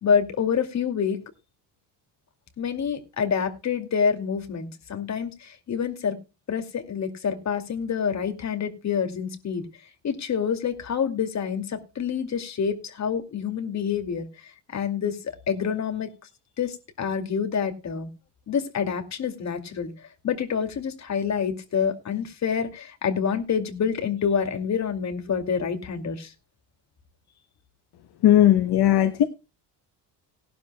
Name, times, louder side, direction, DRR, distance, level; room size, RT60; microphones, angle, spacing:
voice 1, 0.0-1.2 2.6-6.2 6.5-9.6 10.0-14.3 14.7-16.1 16.6-18.1 18.5-19.9 20.2-26.3, left 7 dB, 40° left, 2.4 m, -27 dB
voice 2, 28.2-29.3, left 12 dB, 65° left, 1.1 m, -17 dB
18.5 x 12.0 x 2.2 m
cardioid pair, 120°, 42 cm